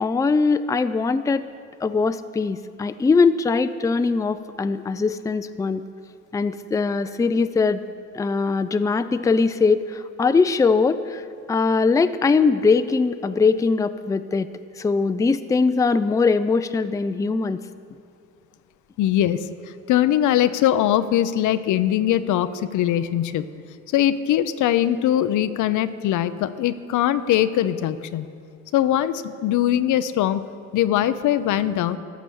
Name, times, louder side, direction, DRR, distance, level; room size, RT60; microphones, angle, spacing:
voice 1, 0.0-1.5 1.8-5.8 6.3-7.8 8.1-14.5 14.8-17.6, left 4 dB, 10° left, 12 dB, 0.4 m, -21 dB
voice 2, 19.0-19.5 19.9-23.5 23.9-28.3 28.7-30.4 30.7-32.0, left 11 dB, 80° left, 13 dB, 0.6 m, -21 dB
14.0 x 6.1 x 7.0 m, 2.3 s
cardioid pair, 90°, 30 cm